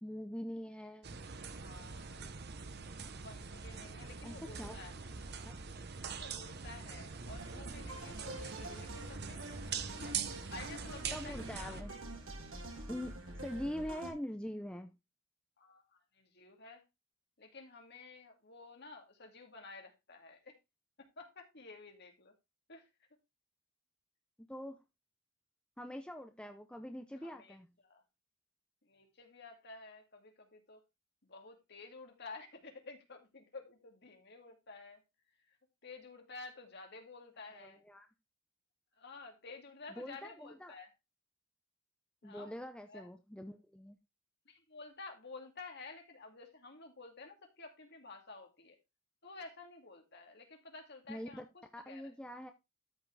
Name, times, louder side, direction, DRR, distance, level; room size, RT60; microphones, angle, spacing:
voice 1, 0.0-1.2 4.2-4.8 5.5-5.6 11.1-11.9 12.9-14.9 24.4-24.8 25.8-27.7 37.5-38.1 40.0-40.8 42.2-44.0 51.1-51.5 51.7-52.5, equal, 5° left, 0.7 m, -44 dB
sound 1, 1.0-11.8, right 6 dB, 50° right, 0.9 m, -44 dB
voice 2, 1.5-2.3 3.2-4.9 6.1-9.4 9.9-10.2 10.5-12.0 15.6-15.8 16.1-16.8 17.4-20.5 21.2-22.3 22.7-22.9 27.2-27.6 27.8-28.0 28.8-30.8 31.2-35.0 35.8-37.8 39.0-40.9 42.2-42.6 42.9-43.1 44.5-48.8 49.2-52.1, left 3 dB, 55° left, 2.4 m, -52 dB
sound 2, 7.1-14.1, right 1 dB, 75° right, 3.3 m, -46 dB
13.0 x 5.8 x 3.4 m
head